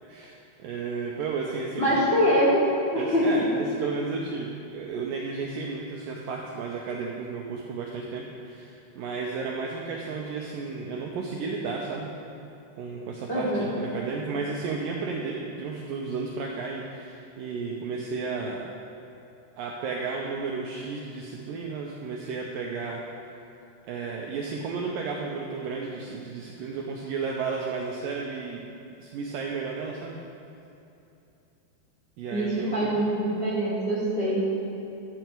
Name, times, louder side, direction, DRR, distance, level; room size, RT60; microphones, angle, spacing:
voice 1, 0.0-1.9 3.0-12.1 12.8-18.7 19.6-23.0 23.9-28.6 29.0-30.2 32.2-33.0, right 4 dB, 75° right, -1 dB, 2.1 m, -33 dB
voice 2, 1.8-2.7 2.9-3.3 13.3-13.8 32.3-34.4, equal, 20° left, -8 dB, 2.3 m, -24 dB
12.5 x 9.1 x 4.5 m, 2.8 s
omnidirectional pair, 4.7 m